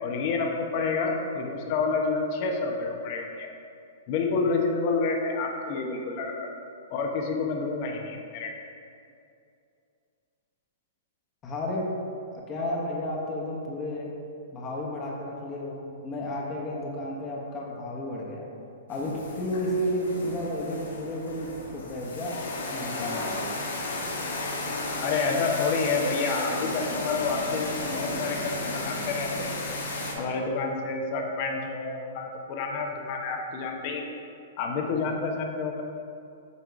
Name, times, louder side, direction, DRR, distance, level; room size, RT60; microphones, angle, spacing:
voice 1, 0.0-3.5 4.1-6.5 6.9-8.5 25.0-29.5 30.2-34.1 34.6-35.8, left 4 dB, 45° left, 2 dB, 1.0 m, -29 dB
voice 2, 11.4-11.8 12.3-14.1 14.5-18.5 18.9-22.4 22.7-23.4, left 1 dB, 25° left, -3 dB, 1.3 m, -32 dB
sound 1, 18.9-30.1, left 2 dB, 75° left, 1.3 m, -33 dB
8.4 x 3.7 x 4.7 m, 2.5 s
hypercardioid pair, 120°, 0 cm